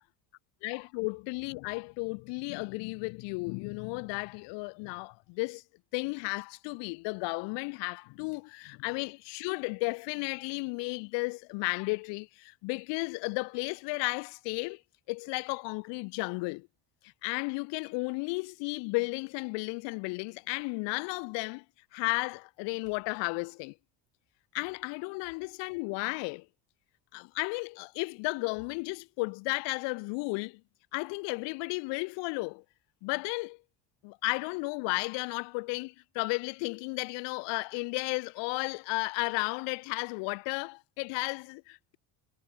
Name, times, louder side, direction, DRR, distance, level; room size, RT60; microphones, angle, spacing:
voice 1, 0.6-5.6 5.9-14.8 15.1-16.7 17.0-21.6 21.9-23.7 24.5-26.5 27.1-30.6 30.9-32.6 33.0-33.6 34.0-42.0, left 30 dB, 80° left, 0.8 m, -34 dB
cardioid pair, 150°, 42 cm